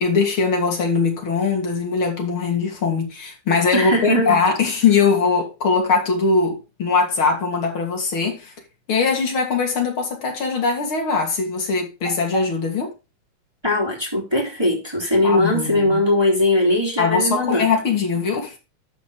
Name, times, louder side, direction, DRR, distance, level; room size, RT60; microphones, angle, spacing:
voice 1, 0.0-8.5 8.9-12.9 15.2-16.0 17.0-18.5, left 4 dB, 40° left, 3.5 m, -21 dB
voice 2, 3.7-4.4 13.6-17.7, left 1 dB, 10° right, 3.4 m, -20 dB
12.5 x 5.2 x 5.0 m
omnidirectional pair, 3.6 m